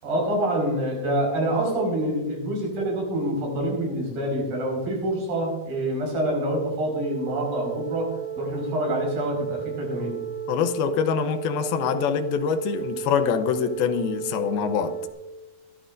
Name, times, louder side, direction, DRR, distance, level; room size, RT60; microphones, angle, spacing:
voice 1, 0.0-10.2, right 1 dB, 75° right, 0 dB, 6.6 m, -26 dB
sound 1, 6.9-15.1, right 9 dB, 60° left, 2.8 m, -34 dB
voice 2, 10.5-14.9, left 7 dB, 85° left, 8 dB, 2.8 m, -25 dB
24.0 x 11.5 x 2.6 m, 1.0 s
omnidirectional pair, 4.2 m